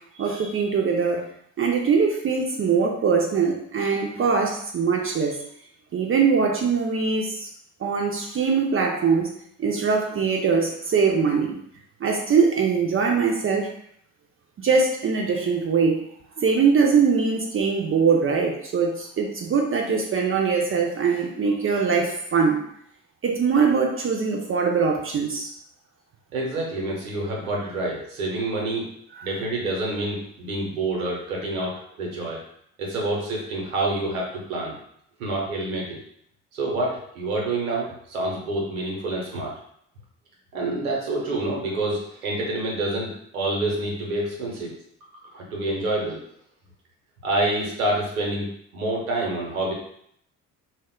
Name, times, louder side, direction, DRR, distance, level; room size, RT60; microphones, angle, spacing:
voice 1, 0.1-1.2 1.6-5.4 5.9-7.5 7.8-9.3 9.6-11.6 12.0-13.7 14.6-16.0 16.4-22.6 23.2-25.5 29.2-29.3, right 5 dB, 30° right, 0 dB, 0.5 m, -22 dB
voice 2, 26.3-28.9 29.2-32.4 32.8-34.7 35.2-36.0 36.5-39.5 40.5-44.7 45.3-46.2 47.2-49.7, right 2 dB, 85° right, -2 dB, 0.7 m, -27 dB
2.1 x 2.0 x 3.6 m, 0.69 s
hypercardioid pair, 45°, 41 cm